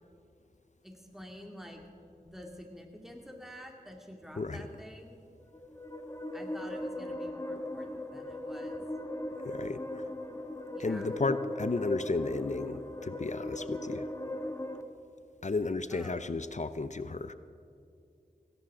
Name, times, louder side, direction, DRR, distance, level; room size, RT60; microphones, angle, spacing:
voice 1, 0.8-1.8 2.1-5.2 6.3-8.8 10.7-11.1 15.9-16.2, equal, ahead, 1 dB, 2.5 m, -48 dB
sound 1, 5.4-14.8, left 1 dB, 20° left, 1.2 m, -38 dB
voice 2, 9.5-10.0 10.8-14.1 15.4-17.3, left 3 dB, 50° left, 12 dB, 0.6 m, -33 dB
19.0 x 17.0 x 3.8 m, 2.5 s
wide cardioid pair, 60°, 16 cm